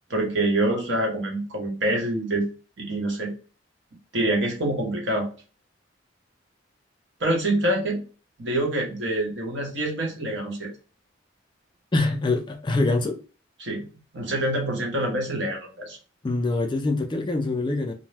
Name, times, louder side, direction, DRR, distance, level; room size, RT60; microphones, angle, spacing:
voice 1, 0.1-2.5 2.8-3.3 4.1-5.3 7.2-8.0 8.4-10.7 13.6-13.9 14.1-16.0, right 1 dB, 70° right, 1.0 m, -26 dB
voice 2, 11.9-13.2 16.2-17.9, left 2 dB, 25° left, 0.4 m, -24 dB
2.6 x 2.1 x 3.2 m
head